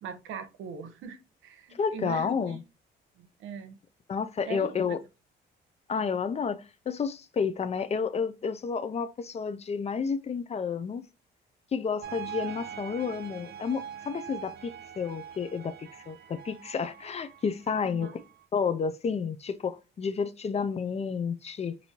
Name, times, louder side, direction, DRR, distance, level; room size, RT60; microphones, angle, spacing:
voice 1, 0.0-2.6 3.2-3.8 4.5-5.0 17.8-18.2, right 7 dB, 85° right, 0.8 m, -41 dB
voice 2, 1.7-2.6 4.1-5.0 5.9-11.0 11.7-18.1 18.5-21.8, left 6 dB, 30° left, 0.4 m, -31 dB
sound 1, 12.0-18.4, right 8 dB, 55° right, 0.6 m, -43 dB
4.4 x 2.6 x 2.8 m
cardioid pair, 90°, 20 cm